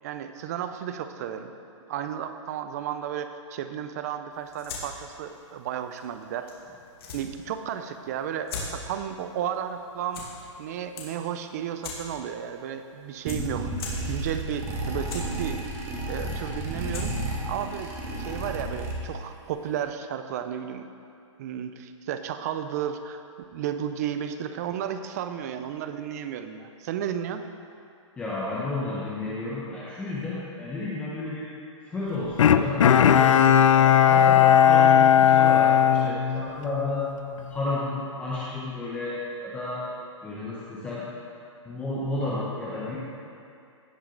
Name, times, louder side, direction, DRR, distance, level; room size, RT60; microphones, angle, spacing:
voice 1, 0.0-1.5 1.9-6.5 7.1-10.2 10.6-13.7 14.1-15.6 16.1-17.1 17.5-20.9 21.4-23.2 23.5-27.5, right 9 dB, 30° right, 9 dB, 0.5 m, -33 dB
sound 1, 4.3-18.7, left 4 dB, 50° left, 2.4 m, -44 dB
sound 2, 13.3-19.3, right 1 dB, 15° right, 0.9 m, -32 dB
voice 2, 28.2-31.5 31.8-37.1 37.5-39.8 40.2-41.0 41.6-43.0, left 2 dB, 5° left, -8 dB, 1.0 m, -32 dB
Bowed string instrument, 32.4-36.9 37.3-37.4, left 9 dB, 70° left, 0.5 m, -17 dB
17.0 x 6.3 x 3.9 m, 2.5 s
hypercardioid pair, 165°, 17 cm